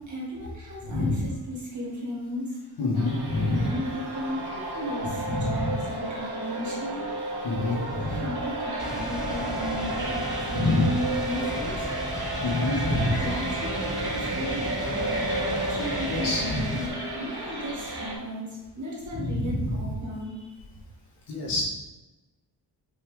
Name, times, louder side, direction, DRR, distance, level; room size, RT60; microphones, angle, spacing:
voice 1, 0.0-2.6 3.5-7.0 7.6-11.8 12.8-15.2 15.7-20.5, left 1 dB, 40° right, -4 dB, 1.9 m, -35 dB
voice 2, 0.8-1.2 2.8-3.7 5.3-5.7 7.4-8.3 10.5-10.8 12.4-13.2 16.1-16.6 19.1-19.7 21.3-21.6, left 2 dB, 70° left, -4 dB, 2.1 m, -27 dB
sound 1, 2.9-18.1, right 1 dB, 65° right, 1.8 m, -32 dB
sound 2, 8.8-16.9, right 1 dB, ahead, 0.6 m, -36 dB
5.8 x 5.3 x 3.4 m, 1.1 s
wide cardioid pair, 160°, 43 cm